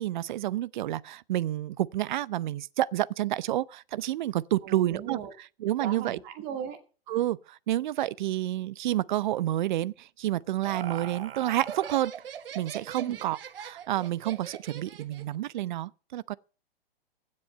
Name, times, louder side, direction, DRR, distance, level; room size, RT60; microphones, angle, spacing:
voice 1, 0.0-5.2 5.6-6.2 7.1-12.1 12.5-16.3, right 14 dB, 50° right, 0.6 m, -29 dB
voice 2, 4.6-5.3 5.8-6.8 13.0-13.2, right 8 dB, 35° right, 2.4 m, -37 dB
Laughter, 10.2-15.4, right 8 dB, 70° right, 1.2 m, -41 dB
16.0 x 7.6 x 6.6 m
hypercardioid pair, 120°, 30 cm